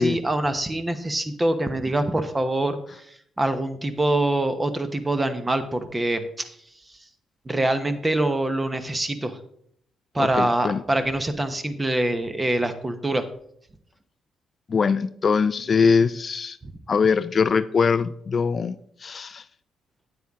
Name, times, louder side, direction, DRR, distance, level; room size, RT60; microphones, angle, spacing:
voice 1, 0.0-2.8 3.4-6.5 7.5-9.4 10.1-13.3 16.6-16.7, right 1 dB, 20° right, 1.0 m, -24 dB
voice 2, 10.2-10.8 14.7-16.6 16.9-19.4, left 5 dB, 40° left, 0.3 m, -22 dB
9.0 x 8.7 x 3.6 m
cardioid pair, 90°, 0 cm